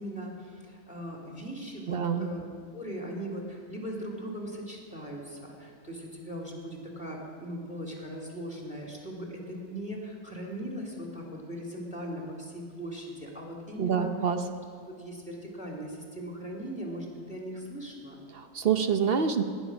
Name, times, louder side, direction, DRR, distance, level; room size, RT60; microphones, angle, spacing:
voice 1, 0.0-2.4 2.7-14.2 14.9-18.2, equal, 5° right, -2 dB, 2.8 m, -39 dB
voice 2, 1.9-2.3 13.8-14.4 18.3-19.4, right 7 dB, 45° right, 7 dB, 0.9 m, -26 dB
18.5 x 10.0 x 6.1 m, 2.1 s
omnidirectional pair, 1.6 m